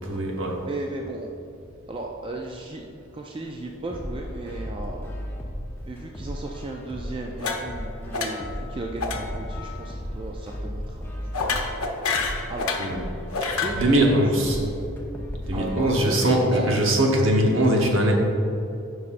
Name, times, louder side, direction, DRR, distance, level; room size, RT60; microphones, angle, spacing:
voice 1, 0.1-0.6 12.8-13.0 13.4-14.6 15.5-18.1, right 1 dB, 65° right, -1 dB, 1.1 m, -21 dB
voice 2, 0.6-1.3 1.9-5.1 5.9-11.3 12.5-12.8 13.6-14.3 15.5-16.9, right 2 dB, 25° right, 0 dB, 0.3 m, -35 dB
sound 1, 3.9-15.9, equal, 10° left, 0.6 m, -35 dB
sound 2, 7.4-7.8 8.1-8.5 9.0-9.2 9.5-9.8 11.3-12.9 13.3-13.8, left 4 dB, 85° left, 0.7 m, -28 dB
9.5 x 5.4 x 2.5 m, 2.7 s
head